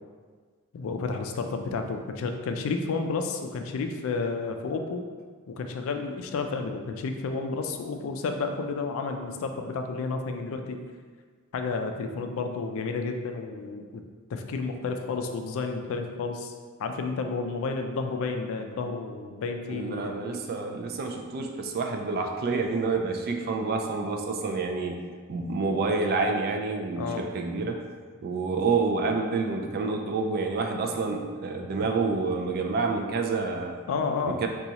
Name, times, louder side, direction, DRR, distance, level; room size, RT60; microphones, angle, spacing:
voice 1, 0.7-5.0 5.5-10.8 11.5-14.0 14.3-16.5 16.8-20.2 27.0-27.3 33.9-34.4, left 4 dB, 65° left, 5 dB, 0.3 m, -31 dB
voice 2, 19.7-25.0 25.3-27.8 28.2-33.8 34.3-34.5, right 4 dB, 45° right, 3 dB, 0.3 m, -28 dB
3.9 x 2.3 x 2.8 m, 1.6 s
head